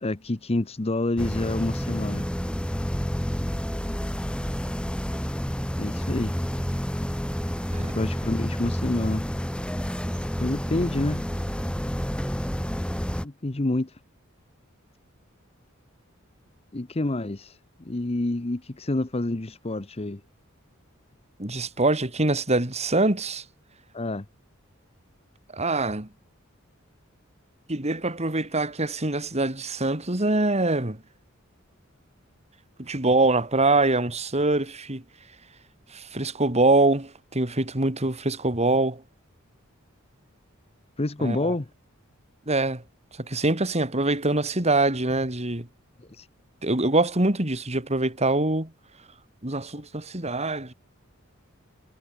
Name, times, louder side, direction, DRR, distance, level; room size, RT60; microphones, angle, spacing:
voice 1, 0.0-2.3 5.8-6.3 7.9-9.3 10.4-11.3 13.2-13.9 16.7-17.5 17.8-20.2 23.9-24.2 41.0-41.7 46.2-46.3, left 2 dB, 30° left, 0.9 m, -28 dB
sound 1, 1.2-13.2, equal, 5° left, 2.1 m, -29 dB
voice 2, 21.4-23.4 25.5-26.1 27.7-31.0 32.8-35.0 35.9-39.0 41.2-41.5 42.5-42.8 43.2-45.7 46.6-48.7 49.4-50.7, right 2 dB, 30° right, 3.3 m, -24 dB
head